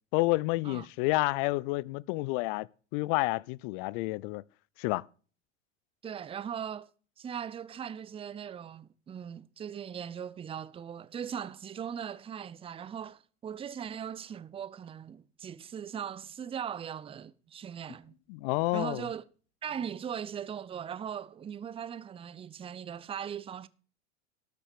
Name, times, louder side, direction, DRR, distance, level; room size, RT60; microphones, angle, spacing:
voice 1, 0.1-2.7 2.9-4.4 4.8-5.0 18.3-19.0, left 22 dB, 45° left, 0.5 m, -29 dB
voice 2, 6.0-6.9 7.2-18.2 18.7-19.2 19.6-23.7, right 8 dB, 15° right, 0.6 m, -39 dB
13.0 x 7.0 x 6.8 m
hypercardioid pair, 100°, 37 cm